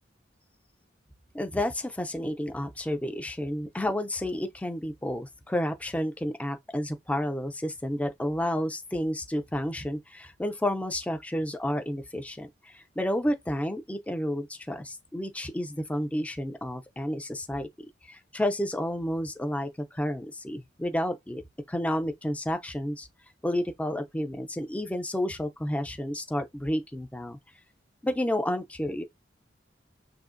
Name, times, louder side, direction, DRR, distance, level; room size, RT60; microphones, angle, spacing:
voice 1, 1.3-17.7 18.1-21.4 21.7-23.1 23.4-27.4 28.0-29.0, left 1 dB, 10° left, 0.4 m, -31 dB
6.2 x 2.5 x 2.5 m
head